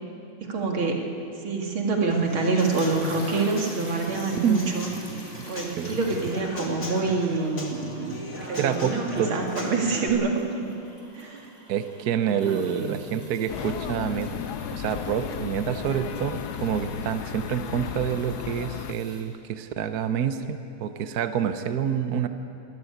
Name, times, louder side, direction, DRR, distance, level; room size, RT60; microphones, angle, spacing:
voice 1, 0.4-1.0 1.4-4.9 5.5-8.2 8.5-10.7 11.1-11.5 12.5-13.0, right 3 dB, 75° right, 1 dB, 3.1 m, -26 dB
Human voice / Acoustic guitar / Drum, 2.1-10.1, left 1 dB, 35° left, 2.6 m, -38 dB
sound 1, 2.6-19.2, equal, 10° left, 3.4 m, -48 dB
voice 2, 8.5-9.3 11.7-14.3 14.7-22.3, right 8 dB, 60° right, 9 dB, 1.2 m, -27 dB
sound 2, 13.5-18.9, left 10 dB, 70° left, 1.0 m, -34 dB
22.0 x 14.0 x 9.7 m, 2.7 s
omnidirectional pair, 2.3 m